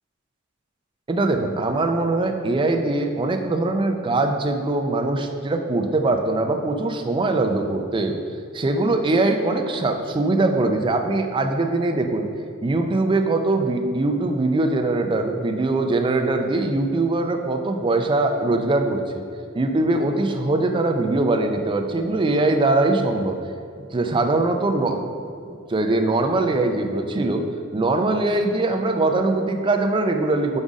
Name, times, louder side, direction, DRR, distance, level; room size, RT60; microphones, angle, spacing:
voice 1, 1.1-8.2 8.5-12.3 12.6-19.2 19.5-23.4 23.9-25.0 25.7-27.4 27.7-30.6, right 2 dB, 25° right, 4 dB, 0.4 m, -22 dB
5.2 x 5.0 x 3.6 m, 2.4 s
head